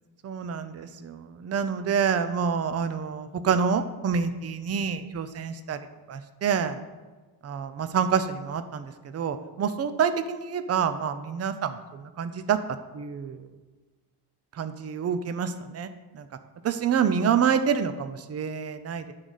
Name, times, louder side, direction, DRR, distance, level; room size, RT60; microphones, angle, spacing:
voice 1, 0.2-5.8 6.1-6.8 7.4-12.6 12.9-13.5 14.6-15.9 16.1-16.3 16.6-19.1, right 7 dB, 35° right, 11 dB, 0.5 m, -27 dB
9.6 x 4.1 x 6.5 m, 1.3 s
cardioid pair, 140°, 43 cm